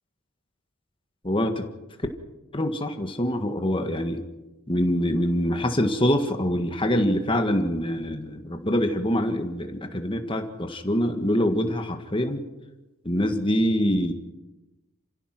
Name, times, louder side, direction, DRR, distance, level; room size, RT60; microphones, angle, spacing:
voice 1, 1.2-1.7 2.5-4.2 4.7-12.4 13.1-14.1, equal, 25° left, 6 dB, 1.7 m, -25 dB
28.5 x 16.0 x 6.1 m, 1.1 s
head